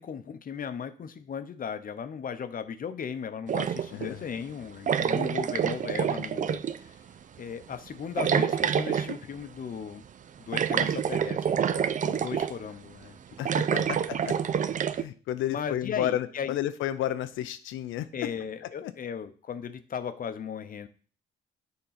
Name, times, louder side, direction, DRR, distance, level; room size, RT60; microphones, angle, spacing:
voice 1, 0.0-7.0 7.4-10.0 10.4-13.2 13.7-13.9 15.5-16.6 18.1-20.9, left 7 dB, 45° left, 10 dB, 0.7 m, -37 dB
sound 1, 3.5-4.1 4.9-6.8 8.2-9.2 10.5-12.6 13.4-15.0, right 8 dB, 40° right, 0.4 m, -27 dB
voice 2, 3.9-4.2 13.4-14.4 14.9-18.1 18.8-18.9, left 12 dB, 85° left, 12 dB, 0.5 m, -32 dB
6.9 x 3.8 x 5.7 m, 0.41 s
cardioid pair, 90°, 20 cm